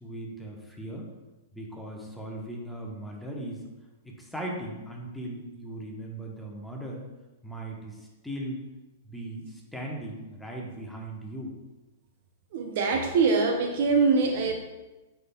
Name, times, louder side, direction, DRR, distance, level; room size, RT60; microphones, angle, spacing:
voice 1, 0.0-1.1 1.5-3.6 4.0-7.0 7.4-8.6 9.0-11.5, right 1 dB, ahead, -2 dB, 1.2 m, -38 dB
voice 2, 12.5-14.5, right 4 dB, 50° right, 4 dB, 0.7 m, -23 dB
8.1 x 5.9 x 2.3 m, 1.1 s
figure-of-eight pair, 105°, 0 cm